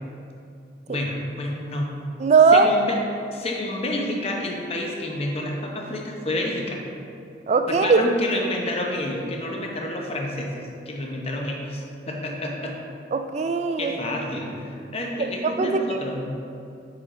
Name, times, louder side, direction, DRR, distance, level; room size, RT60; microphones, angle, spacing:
voice 1, 0.9-1.9 2.5-3.0 3.3-6.8 7.7-12.8 13.8-16.4, left 1 dB, 35° left, 0 dB, 0.8 m, -29 dB
voice 2, 2.2-2.7 7.5-8.0 13.1-14.2 15.2-16.0, right 4 dB, 40° right, 8 dB, 0.3 m, -19 dB
6.1 x 5.0 x 3.7 m, 2.6 s
head